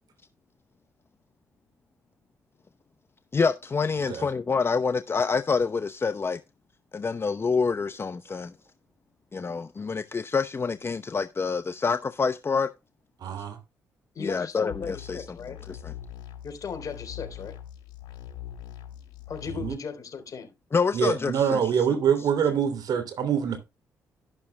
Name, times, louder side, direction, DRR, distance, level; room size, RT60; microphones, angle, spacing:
voice 1, 3.3-6.4 6.9-8.6 9.3-12.7 14.2-15.4 15.7-15.9 20.7-21.7 22.2-22.3, left 5 dB, 35° left, 0.8 m, -27 dB
voice 2, 13.2-13.6 19.5-19.8 20.9-23.6, right 8 dB, 60° right, 2.8 m, -25 dB
voice 3, 14.2-15.6 16.4-17.6 19.3-20.5, left 6 dB, 50° left, 3.7 m, -37 dB
sound 1, 14.7-19.7, left 11 dB, 75° left, 3.7 m, -42 dB
12.5 x 11.5 x 2.2 m
hypercardioid pair, 45°, 8 cm